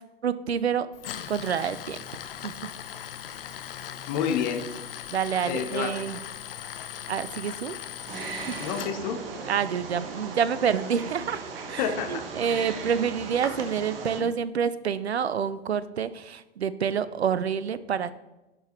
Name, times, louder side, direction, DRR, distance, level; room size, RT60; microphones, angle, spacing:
voice 1, 0.2-0.9 1.3-2.0 2.4-2.7 5.1-6.2 7.1-7.7 8.5-8.6 9.5-11.4 11.7-18.1, right 7 dB, 85° right, 15 dB, 0.5 m, -28 dB
Tools, 0.9-8.9, left 10 dB, 60° left, 0.6 m, -39 dB
voice 2, 4.1-4.7 5.5-5.9 8.6-9.2 11.8-12.2 12.5-12.6 14.2-14.3, left 8 dB, 45° left, 7 dB, 1.0 m, -29 dB
Wild animals, 8.1-14.2, right 4 dB, 60° right, 1.1 m, -37 dB
11.0 x 4.6 x 3.1 m, 1.0 s
figure-of-eight pair, 95°, 32 cm